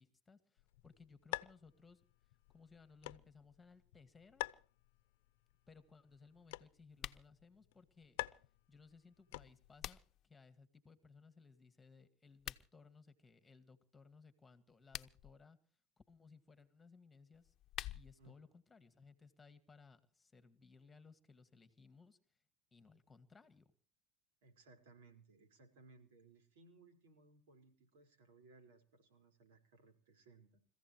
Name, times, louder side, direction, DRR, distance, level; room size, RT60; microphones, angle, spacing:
voice 1, 0.0-2.0 2.5-4.4 5.7-8.2 8.7-15.6 16.1-17.5 17.9-22.4 22.7-23.7, left 4 dB, 15° left, 11 dB, 1.9 m, -62 dB
sound 1, 0.6-9.9, left 19 dB, 70° left, 0.7 m, -50 dB
sound 2, 6.9-7.3 9.3-10.3 12.3-12.7 14.7-15.3 17.3-18.3, left 13 dB, 40° left, 0.9 m, -48 dB
voice 2, 24.4-30.6, right 3 dB, 80° right, 6 dB, 4.8 m, -64 dB
30.0 x 15.0 x 3.1 m, 0.40 s
supercardioid pair, 120°, 0 cm